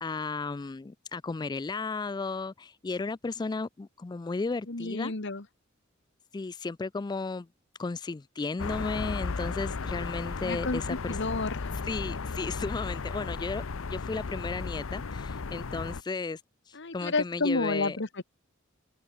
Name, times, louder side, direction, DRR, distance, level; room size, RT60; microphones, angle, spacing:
voice 1, 0.0-5.1 6.3-7.5 7.8-11.2 11.8-13.6 13.9-16.4 16.7-18.0, left 3 dB, 20° left, 0.3 m, -34 dB
voice 2, 4.7-5.4 10.4-11.7 16.7-18.2, left 3 dB, 60° left, 1.6 m, -31 dB
sound 1, 8.6-16.0, left 4 dB, 80° left, 0.7 m, -35 dB
open air
head